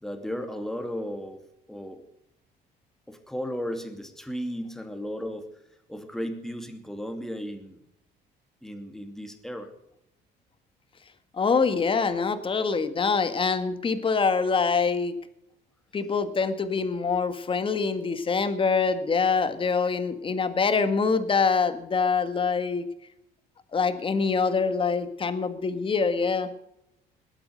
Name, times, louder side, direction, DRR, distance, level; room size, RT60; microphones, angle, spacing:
voice 1, 0.0-1.4 1.7-2.0 3.1-5.5 5.9-7.8 8.6-9.7, equal, ahead, 6 dB, 2.5 m, -35 dB
voice 2, 11.3-15.2 15.9-22.8 23.7-26.5, left 5 dB, 30° left, 10 dB, 1.8 m, -25 dB
21.0 x 8.8 x 6.5 m, 0.80 s
cardioid pair, 110°, 17 cm